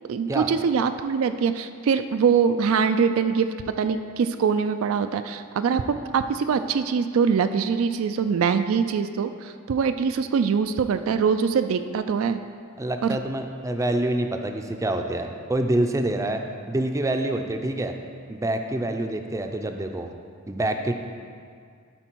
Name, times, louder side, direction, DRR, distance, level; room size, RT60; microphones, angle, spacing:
voice 1, 0.1-3.5 3.8-12.4 13.0-13.2, right 6 dB, 80° right, 9 dB, 0.3 m, -23 dB
voice 2, 12.8-16.4 16.7-17.9 18.3-20.1 20.5-20.9, right 1 dB, 15° right, 5 dB, 0.4 m, -26 dB
12.0 x 4.3 x 4.6 m, 2.2 s
head